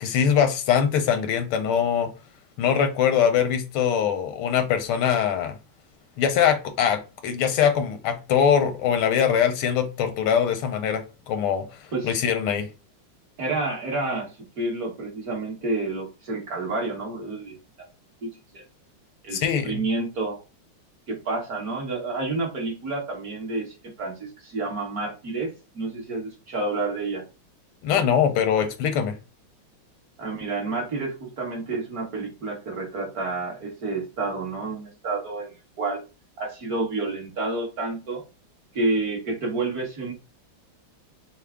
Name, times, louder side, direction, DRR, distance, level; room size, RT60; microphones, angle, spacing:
voice 1, 0.0-2.1 2.6-5.6 6.2-11.7 12.0-12.7 19.3-19.8 27.8-29.1, left 8 dB, 80° left, 1.6 m, -22 dB
voice 2, 13.4-17.6 18.2-18.6 19.2-20.4 21.1-25.5 25.7-27.2 30.2-35.5 35.8-36.0 36.4-38.2 38.7-40.1, right 3 dB, 50° right, 1.5 m, -29 dB
5.7 x 2.1 x 3.5 m
omnidirectional pair, 2.3 m